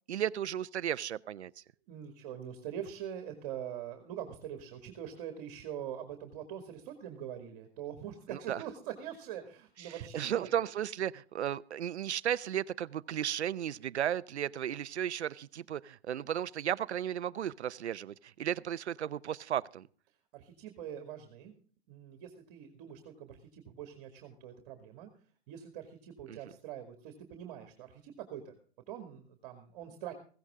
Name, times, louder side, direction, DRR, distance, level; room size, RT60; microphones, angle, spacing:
voice 1, 0.1-1.5 8.3-8.6 9.8-19.9 26.3-26.4, right 10 dB, 85° right, 17 dB, 0.8 m, -34 dB
voice 2, 1.9-10.5 20.3-21.5 21.9-25.1 25.5-28.6 28.9-30.1, right 10 dB, 35° right, 6 dB, 2.4 m, -43 dB
16.0 x 15.0 x 3.7 m, 0.43 s
hypercardioid pair, 150°, 33 cm